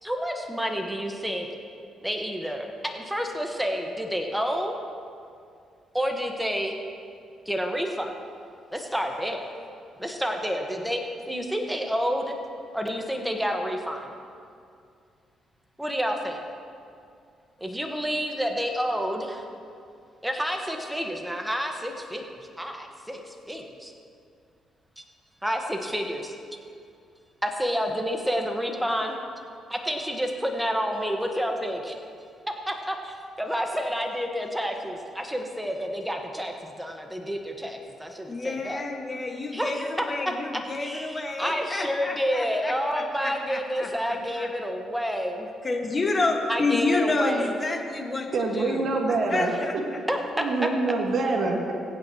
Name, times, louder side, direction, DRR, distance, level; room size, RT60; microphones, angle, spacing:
voice 1, 0.0-1.5 2.0-4.8 5.9-6.8 7.4-8.1 8.7-9.4 10.0-11.0 11.3-12.3 12.7-14.1 15.8-16.4 17.6-19.4 20.2-23.9 25.4-26.3 27.4-29.2 29.7-32.0 32.7-38.8 39.5-40.1 40.5-45.5 46.5-47.5 50.1-50.7, equal, 5° right, 2 dB, 1.3 m, -29 dB
voice 2, 38.3-44.5 45.6-50.0, left 3 dB, 30° left, 2 dB, 1.7 m, -29 dB
voice 3, 48.3-49.5 50.4-51.7, right 3 dB, 55° right, 0 dB, 1.6 m, -25 dB
22.5 x 8.5 x 3.0 m, 2.4 s
cardioid pair, 90°, 0 cm